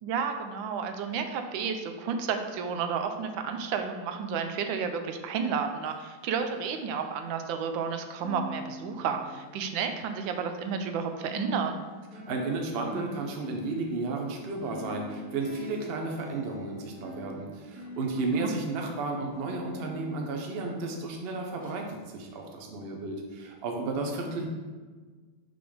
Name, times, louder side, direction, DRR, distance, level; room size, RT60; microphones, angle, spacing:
voice 1, 0.0-11.8 18.3-18.5, right 6 dB, 80° right, 6 dB, 1.3 m, -31 dB
sound 1, 5.7-7.9 8.1-21.2 21.6-21.8 22.3-22.4, equal, 5° right, 1.1 m, -45 dB
voice 2, 12.3-24.5, right 3 dB, 60° right, 1 dB, 0.6 m, -33 dB
5.9 x 3.4 x 5.0 m, 1.4 s
omnidirectional pair, 2.1 m